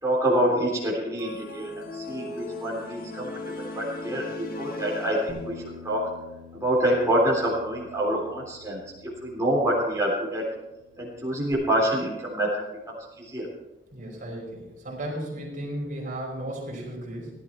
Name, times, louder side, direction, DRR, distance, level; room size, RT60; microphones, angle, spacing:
voice 1, 0.0-3.3 3.6-6.1 6.5-8.8 9.2-10.4 11.0-12.5 12.9-13.5, right 1 dB, 20° right, -5 dB, 3.7 m, -26 dB
sound 1, 1.2-5.8, left 2 dB, 55° left, 1.6 m, -37 dB
Bass guitar, 5.3-10.0 10.3-11.5, left 3 dB, 40° left, 6.7 m, -47 dB
voice 2, 13.9-17.3, right 1 dB, 45° right, -1 dB, 5.0 m, -35 dB
17.5 x 12.0 x 4.6 m, 1.0 s
head